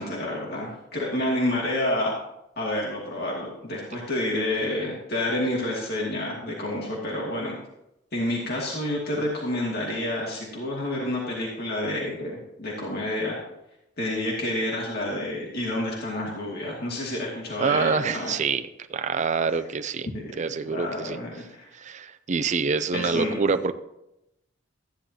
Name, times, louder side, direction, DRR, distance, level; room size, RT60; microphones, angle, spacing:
voice 1, 0.0-2.1 2.6-7.5 8.1-13.4 14.0-18.3 20.7-21.7 22.9-23.4, left 1 dB, 55° left, -3 dB, 2.3 m, -29 dB
voice 2, 17.6-20.1 20.4-21.2 21.7-23.7, right 5 dB, 40° right, 10 dB, 0.5 m, -26 dB
14.0 x 10.0 x 2.9 m, 0.86 s
head